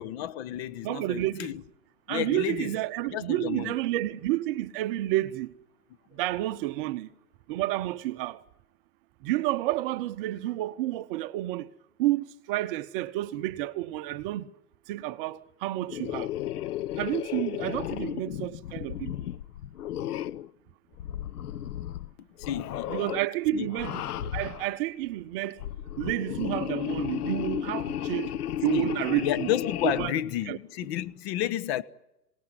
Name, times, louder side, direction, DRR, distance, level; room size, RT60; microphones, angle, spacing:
voice 1, 0.0-1.6 2.1-2.7 3.1-3.7 22.4-23.0 23.5-23.7 28.7-31.8, left 11 dB, 40° left, 1.2 m, -31 dB
voice 2, 0.8-1.5 2.1-5.5 6.1-7.1 7.5-8.4 9.2-11.7 12.0-14.5 14.9-16.3 17.0-19.3 22.9-25.6 26.0-28.3 28.6-29.5 29.8-30.1 30.5-30.6, right 16 dB, 35° right, 0.9 m, -30 dB
sound 1, 15.9-20.5 21.0-22.1 22.4-23.2 23.7-24.7 25.4-30.1, left 11 dB, 65° left, 0.9 m, -34 dB
27.0 x 18.5 x 9.6 m
hypercardioid pair, 120°, 49 cm